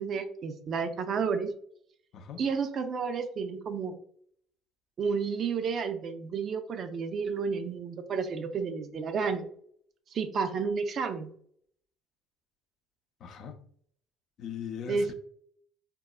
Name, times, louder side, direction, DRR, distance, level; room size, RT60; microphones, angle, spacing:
voice 1, 0.0-1.5 2.4-4.0 5.0-9.5 10.1-11.3 14.9-15.1, right 5 dB, 55° right, 8 dB, 0.4 m, -31 dB
voice 2, 13.2-13.6 14.4-15.1, left 8 dB, 60° left, 6 dB, 0.4 m, -39 dB
3.5 x 2.0 x 2.2 m, 0.62 s
hypercardioid pair, 65°, 0 cm